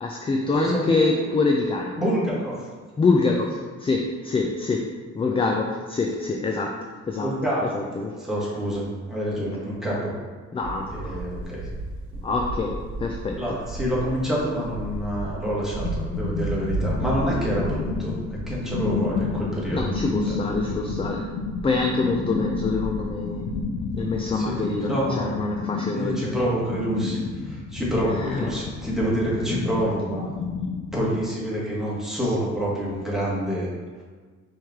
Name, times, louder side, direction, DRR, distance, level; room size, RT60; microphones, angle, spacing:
voice 1, 0.0-2.0 3.0-4.9 5.2-6.8 7.1-7.3 7.7-8.2 9.4-9.5 10.5-11.2 12.2-13.4 19.7-21.3 21.6-23.5 23.9-24.9 25.2-26.3 28.1-28.5, left 3 dB, 20° left, 1 dB, 0.3 m, -25 dB
voice 2, 0.5-1.2 2.0-2.7 5.2-5.3 7.2-7.8 8.2-10.2 10.9-11.7 12.1-12.2 13.4-18.2 18.5-19.9 20.3-20.9 24.3-25.4 25.9-30.3 30.9-33.7, equal, ahead, -7 dB, 1.4 m, -27 dB
sound 1, 10.6-24.3, right 2 dB, 70° right, 1.2 m, -34 dB
sound 2, 15.3-30.9, left 5 dB, 75° left, 0.6 m, -31 dB
4.5 x 3.1 x 3.6 m, 1.5 s
cardioid pair, 105°, 30 cm